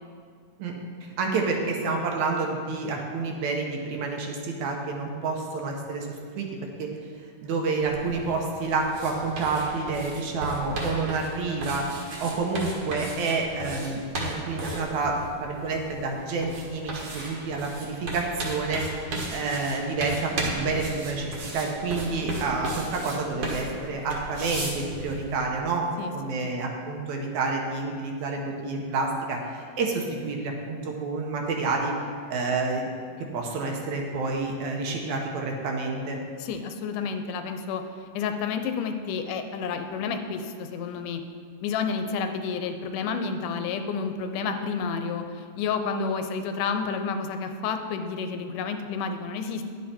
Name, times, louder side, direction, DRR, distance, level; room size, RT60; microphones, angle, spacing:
voice 1, 1.0-6.1 6.4-6.5 6.8-6.9 7.4-18.8 19.3-25.9 26.1-31.9 32.3-32.9 33.3-36.2, right 3 dB, 70° right, 1 dB, 2.3 m, -29 dB
sound 1, 7.8-25.5, right 2 dB, 55° right, 2.1 m, -35 dB
voice 2, 36.4-37.8 38.1-41.2 41.6-49.6, left 5 dB, 85° left, 7 dB, 2.2 m, -30 dB
10.5 x 7.8 x 4.3 m, 2.1 s
omnidirectional pair, 3.6 m